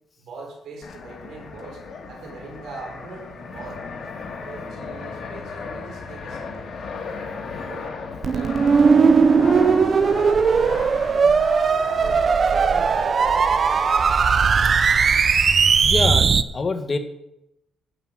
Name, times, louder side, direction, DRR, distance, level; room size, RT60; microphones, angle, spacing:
voice 1, 0.2-1.8 2.1-3.8 4.4-6.7 7.6-7.9 8.2-11.3 11.7-13.7, right 3 dB, 70° right, 0 dB, 4.9 m, -40 dB
Fixed-wing aircraft airplane, 0.8-16.1, left 4 dB, 55° left, 2.2 m, -36 dB
sound 1, 8.2-16.4, right 5 dB, 45° right, 0.6 m, -18 dB
voice 2, 15.3-17.0, left 3 dB, 35° left, 7 dB, 1.6 m, -27 dB
11.0 x 6.9 x 7.6 m, 0.86 s
cardioid pair, 90°, 0 cm